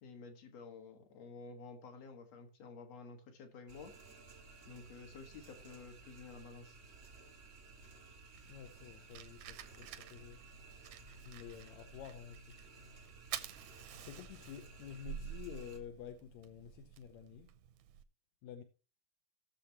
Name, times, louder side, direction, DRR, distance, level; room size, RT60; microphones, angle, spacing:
voice 1, 0.0-3.9 4.7-6.8, left 4 dB, 55° left, 2.4 m, -51 dB
sound 1, 3.7-15.8, right 3 dB, 35° right, 1.1 m, -57 dB
Fire, 8.3-18.0, right 11 dB, 75° right, 1.9 m, -50 dB
voice 2, 8.5-10.4 11.3-12.7 14.0-17.5 18.4-18.6, left 9 dB, 75° left, 1.9 m, -50 dB
17.5 x 6.8 x 2.9 m
omnidirectional pair, 3.8 m